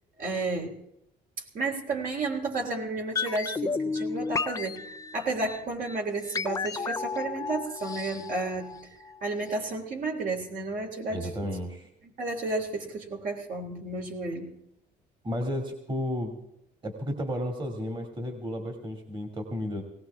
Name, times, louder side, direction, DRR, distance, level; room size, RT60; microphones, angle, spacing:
voice 1, 0.2-0.7 1.5-4.8 5.1-8.7 9.2-11.6 12.0-14.5, right 3 dB, 55° right, 1 dB, 3.5 m, -32 dB
sound 1, 3.2-9.2 9.5-9.6, left 4 dB, 20° left, 0.5 m, -33 dB
voice 2, 11.1-11.9 15.2-16.3 16.8-19.8, equal, 30° right, 3 dB, 2.5 m, -33 dB
19.5 x 17.5 x 3.5 m, 0.77 s
cardioid pair, 110°, 17 cm